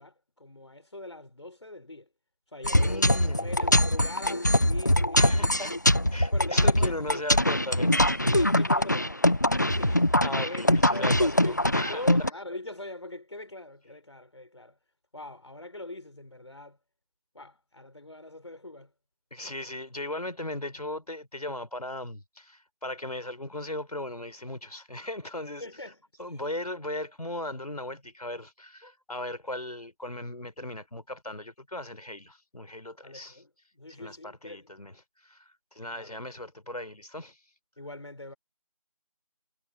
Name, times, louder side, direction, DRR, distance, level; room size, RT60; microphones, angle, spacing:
voice 1, 0.0-2.1 2.5-5.7 6.3-7.0 8.3-14.8 15.1-16.8 17.3-18.9 25.6-26.0 33.0-34.7 35.9-36.2 37.8-38.3, left 2 dB, 50° left, 4.6 m, -42 dB
sound 1, 2.6-12.3, left 1 dB, 30° left, 1.0 m, -23 dB
voice 2, 2.7-3.6 5.2-5.7 6.1-8.3 10.2-12.0 19.3-25.6 26.2-33.4 34.0-34.9 35.2-35.4 35.7-37.4, left 1 dB, 85° left, 4.3 m, -37 dB
figure-of-eight pair, 175°, 19 cm